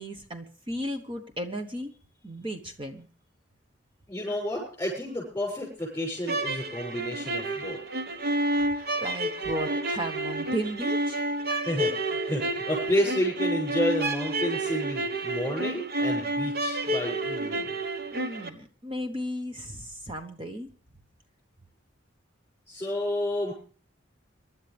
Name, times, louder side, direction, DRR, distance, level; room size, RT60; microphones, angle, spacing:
voice 1, 0.0-1.9 2.2-3.1 8.5-11.2 18.1-20.7, equal, 25° right, 5 dB, 1.1 m, -35 dB
voice 2, 4.1-7.8 11.6-17.7 22.7-23.5, left 1 dB, 10° left, -5 dB, 6.9 m, -30 dB
sound 1, 6.2-18.5, right 1 dB, 50° right, 1.2 m, -30 dB
24.0 x 12.0 x 3.5 m, 0.41 s
head